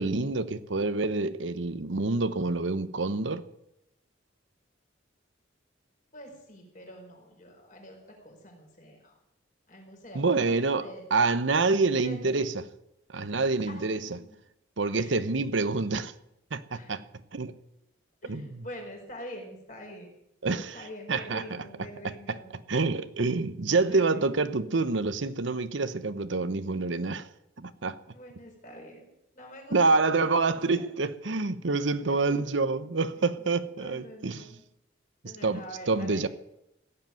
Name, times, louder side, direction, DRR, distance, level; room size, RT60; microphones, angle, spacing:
voice 1, 0.0-3.4 10.1-12.6 13.1-14.2 14.8-16.1 16.5-17.0 17.3-17.6 18.3-18.6 20.4-21.6 22.0-27.3 27.6-28.0 29.7-34.4 35.2-36.3, right 3 dB, 75° right, 0.8 m, -27 dB
voice 2, 6.1-9.2 9.7-11.1 12.0-12.3 13.3-13.4 13.7-14.3 14.9-15.2 16.7-16.9 18.2-20.1 20.6-22.5 23.8-24.5 28.1-30.9 31.9-32.4 33.4-33.5 33.8-34.6 35.2-36.3, equal, 40° left, 4.6 m, -46 dB
16.5 x 7.8 x 9.2 m
head